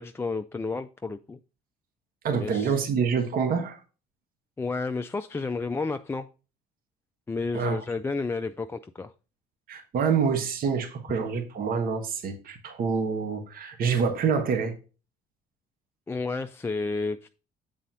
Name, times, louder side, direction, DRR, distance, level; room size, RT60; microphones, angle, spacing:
voice 1, 0.0-1.4 2.3-2.8 4.6-6.3 7.3-9.1 16.1-17.3, left 3 dB, 15° left, 0.3 m, -31 dB
voice 2, 2.2-3.8 7.5-7.8 9.7-14.7, right 6 dB, 60° right, 1.4 m, -26 dB
7.6 x 4.1 x 5.5 m
cardioid pair, 110°, 17 cm